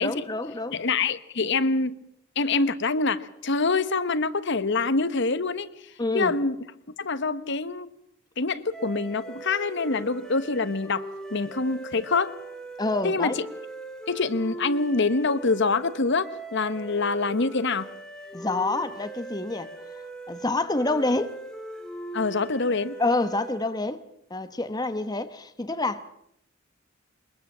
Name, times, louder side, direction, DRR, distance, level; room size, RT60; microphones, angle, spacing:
voice 1, 0.0-0.8 6.0-6.4 12.8-13.4 18.3-19.7 20.3-21.4 23.0-24.0 24.3-26.0, left 2 dB, 20° left, 1.1 m, -27 dB
voice 2, 0.7-1.9 2.4-5.7 6.1-6.6 7.0-7.9 8.4-11.0 11.3-12.3 13.0-13.3 14.1-17.9 22.1-23.0, left 3 dB, 60° left, 1.1 m, -25 dB
sound 1, 8.7-23.8, right 2 dB, 5° left, 2.8 m, -40 dB
22.5 x 21.5 x 7.4 m
head